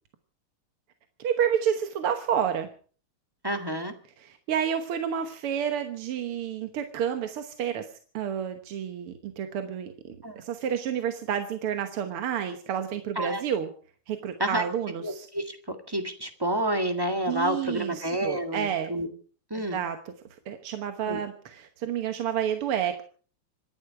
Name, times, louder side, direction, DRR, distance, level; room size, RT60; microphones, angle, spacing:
voice 1, 1.2-2.7 4.2-7.9 8.1-13.7 14.1-15.3 17.3-18.9 19.5-20.1 20.5-23.0, right 8 dB, 80° right, 7 dB, 2.1 m, -30 dB
voice 2, 3.4-3.9 10.2-10.4 13.1-13.4 14.4-14.6 15.0-19.1 19.5-19.8 21.1-21.2, right 1 dB, 10° right, 6 dB, 1.7 m, -29 dB
26.0 x 11.5 x 4.7 m, 0.43 s
omnidirectional pair, 2.4 m